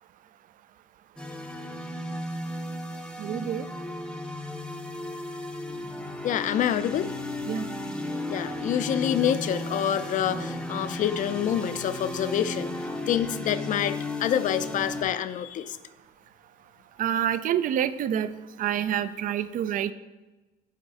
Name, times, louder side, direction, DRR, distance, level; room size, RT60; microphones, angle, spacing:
sound 1, 1.2-15.0, left 1 dB, 5° left, 0.6 m, -34 dB
voice 1, 3.2-3.6 7.5-7.6 17.0-18.3 18.6-19.9, right 10 dB, 55° right, 14 dB, 0.4 m, -27 dB
voice 2, 6.2-7.2 8.3-12.7 13.1-15.8, left 10 dB, 50° left, 13 dB, 0.4 m, -27 dB
8.5 x 4.1 x 4.8 m, 1.1 s
cardioid pair, 110°, 17 cm